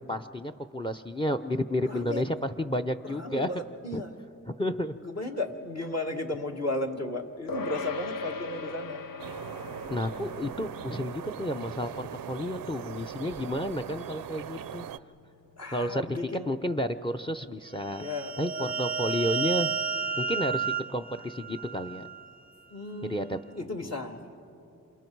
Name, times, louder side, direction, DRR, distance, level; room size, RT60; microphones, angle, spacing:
voice 1, 0.1-3.5 3.9-4.0 4.6-4.9 9.9-14.9 15.7-16.0 16.5-18.0 18.4-19.7 20.2-22.1 23.0-23.4, equal, 15° left, 10 dB, 0.7 m, -31 dB
voice 2, 1.8-2.3 3.0-4.2 4.9-9.0 15.6-16.5 18.0-18.7 19.0-19.2 21.2-21.3 22.7-24.3, left 2 dB, 50° left, 1 dB, 2.0 m, -35 dB
sound 1, 7.5-17.2, left 3 dB, 85° left, 0.8 m, -42 dB
sound 2, 9.2-15.0, right 9 dB, 80° right, 0.5 m, -40 dB
sound 3, 17.8-22.3, right 6 dB, 25° right, 0.6 m, -32 dB
27.5 x 27.5 x 4.7 m, 2.6 s
cardioid pair, 50°, 33 cm